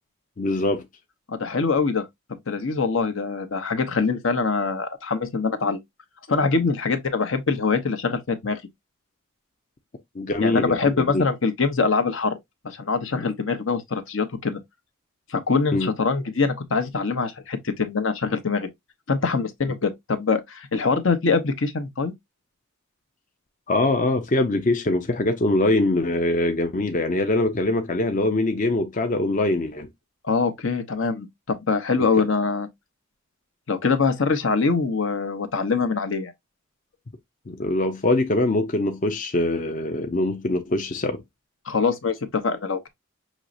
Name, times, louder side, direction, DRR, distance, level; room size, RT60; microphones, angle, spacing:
voice 1, 0.4-0.8 10.2-11.2 15.7-15.9 23.7-29.9 32.0-32.2 37.5-41.2, left 2 dB, 40° left, 0.6 m, -23 dB
voice 2, 1.3-2.1 2.5-5.8 6.3-8.6 10.4-12.4 12.6-14.6 15.3-18.7 19.1-22.1 30.2-32.7 33.7-36.3 41.7-42.9, left 4 dB, 70° left, 0.9 m, -24 dB
6.2 x 3.0 x 2.6 m
head